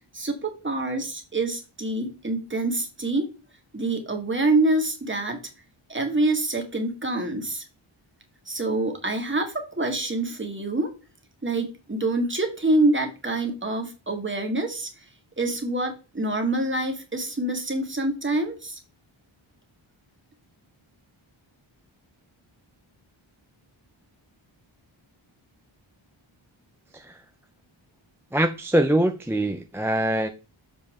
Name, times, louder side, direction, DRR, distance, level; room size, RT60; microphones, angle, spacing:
voice 1, 0.1-3.3 3.7-5.4 5.9-7.6 8.5-10.9 11.4-15.0 15.4-18.8, right 2 dB, 25° right, 1.7 m, -26 dB
voice 2, 28.3-30.3, right 1 dB, 5° right, 0.4 m, -23 dB
7.3 x 4.6 x 3.6 m
wide cardioid pair, 95°, 49 cm